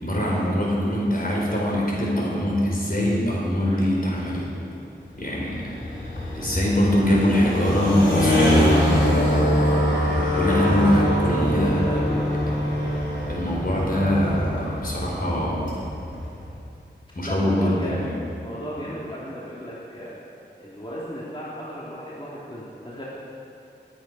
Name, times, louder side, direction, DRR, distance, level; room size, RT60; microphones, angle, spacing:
voice 1, 0.0-4.5 5.2-5.7 6.3-9.8 10.4-12.3 13.3-15.8 17.1-18.2, equal, 50° left, -3 dB, 4.4 m, -23 dB
sound 1, 5.0-16.6, equal, 85° left, 3.7 m, -24 dB
voice 2, 11.7-12.5 17.3-18.1 18.4-20.1 20.6-23.0, equal, 25° left, -8 dB, 2.8 m, -35 dB
20.5 x 9.3 x 5.6 m, 2.6 s
wide cardioid pair, 60°, 19 cm